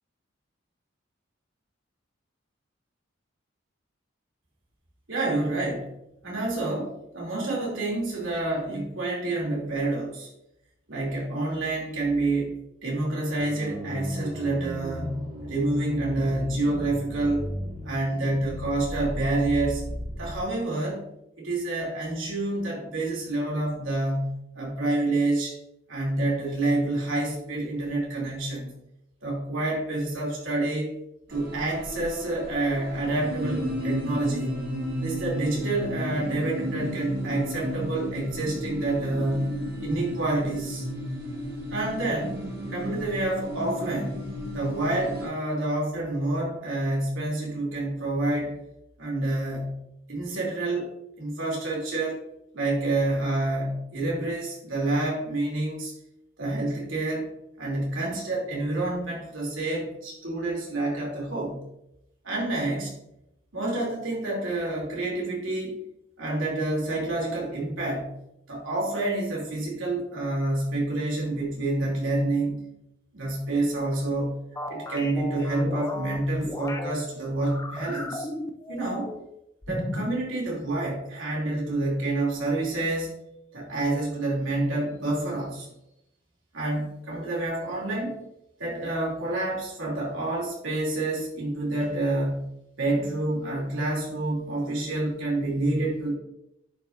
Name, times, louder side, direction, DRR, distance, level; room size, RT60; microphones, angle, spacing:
voice 1, 5.1-5.9 6.2-10.3 10.9-12.5 12.8-17.5 17.8-19.8 20.2-21.0 21.4-25.6 25.9-28.7 29.2-30.9 31.3-34.5 35.0-39.5 39.8-40.9 41.7-42.4 42.7-44.2 44.5-48.5 49.0-49.8 50.1-50.9 51.2-52.2 52.5-55.9 56.4-57.3 57.6-61.6 62.2-62.9 63.5-65.7 66.2-68.1 68.5-72.6 73.1-74.4 74.7-78.3 78.7-79.1 79.7-83.2 83.5-85.7 86.5-88.3 88.6-92.5 92.8-96.1, right 2 dB, 75° right, -4 dB, 2.8 m, -28 dB
sound 1, 13.4-20.4, equal, 30° right, 2.0 m, -36 dB
sound 2, 31.3-45.3, equal, 50° right, 1.9 m, -33 dB
sound 3, 74.5-76.9 77.4-79.3 79.6-80.2, left 1 dB, 15° left, 0.5 m, -35 dB
10.5 x 5.5 x 2.6 m, 0.84 s
head